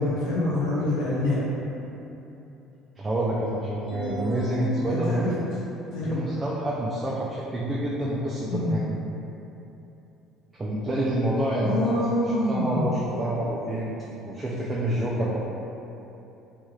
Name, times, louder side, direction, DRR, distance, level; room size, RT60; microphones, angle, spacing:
voice 1, 0.0-1.4 4.8-5.3 5.9-6.3 8.5-8.7 11.6-12.9, left 1 dB, 80° left, -9 dB, 1.1 m, -26 dB
voice 2, 3.0-5.4 6.0-8.8 10.6-13.9 14.2-15.4, right 1 dB, 20° right, -5 dB, 0.3 m, -28 dB
sound 1, 3.9-5.5, equal, 40° left, 0.5 m, -33 dB
3.1 x 2.3 x 2.9 m, 2.9 s
cardioid pair, 110°, 0 cm